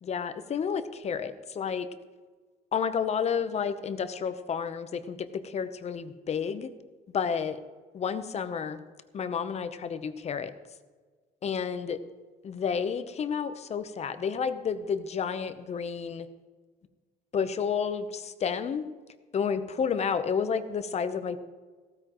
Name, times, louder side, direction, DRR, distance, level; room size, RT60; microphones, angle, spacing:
voice 1, 0.0-1.9 2.7-6.7 7.1-7.6 7.9-8.8 9.1-10.5 11.4-12.0 12.4-16.3 17.3-18.9 19.3-21.4, left 6 dB, 40° left, 11 dB, 0.8 m, -30 dB
15.5 x 14.0 x 3.1 m, 1.4 s
cardioid pair, 110°, 17 cm